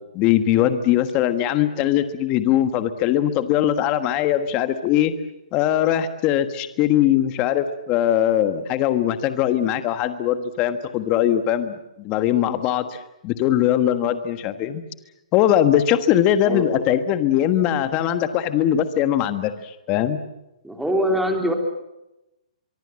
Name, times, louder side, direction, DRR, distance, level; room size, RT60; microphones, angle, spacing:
voice 1, 0.1-5.1 5.5-14.8 15.3-20.2, left 11 dB, 25° left, 11 dB, 1.4 m, -21 dB
voice 2, 20.6-21.5, equal, ahead, 3 dB, 3.0 m, -22 dB
24.0 x 24.0 x 7.6 m, 0.95 s
hypercardioid pair, 155°, 4 cm